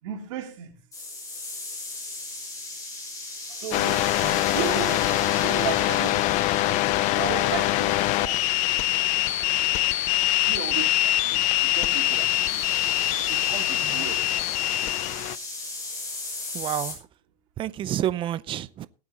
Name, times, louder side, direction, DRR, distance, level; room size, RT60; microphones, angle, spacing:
voice 1, 0.0-0.8 3.5-4.0 4.5-6.8 7.1-8.4 10.4-12.6 13.3-14.3, right 11 dB, 70° right, 3.3 m, -35 dB
sound 1, 0.9-16.9, left 2 dB, 20° left, 6.1 m, -37 dB
sound 2, 3.7-15.4, left 17 dB, 45° left, 0.6 m, -24 dB
voice 2, 16.5-17.0 17.6-18.9, right 12 dB, 30° right, 0.6 m, -29 dB
19.0 x 8.7 x 3.0 m
supercardioid pair, 130°, 17 cm